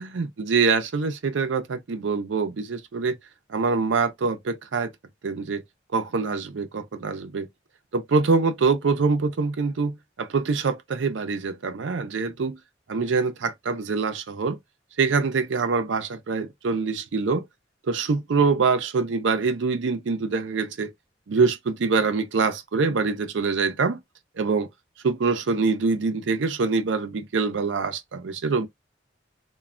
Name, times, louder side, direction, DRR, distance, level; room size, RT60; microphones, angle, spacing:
voice 1, 0.0-3.2 3.5-4.9 5.2-5.6 5.9-7.5 7.9-12.6 12.9-14.6 15.0-17.5 17.9-20.9 21.3-24.0 24.4-24.7 25.0-28.7, right 4 dB, 85° right, 0.5 m, -24 dB
3.1 x 2.2 x 2.4 m
head